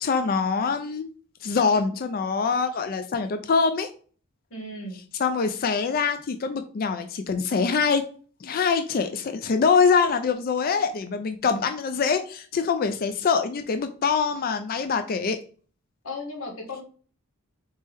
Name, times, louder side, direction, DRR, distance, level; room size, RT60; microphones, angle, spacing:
voice 1, 0.0-1.1 1.4-3.9 5.2-8.0 8.4-15.4, left 5 dB, 45° left, 8 dB, 0.4 m, -24 dB
voice 2, 4.5-5.0 16.0-16.8, left 2 dB, 80° left, 1 dB, 1.4 m, -35 dB
4.2 x 3.4 x 3.5 m, 0.41 s
head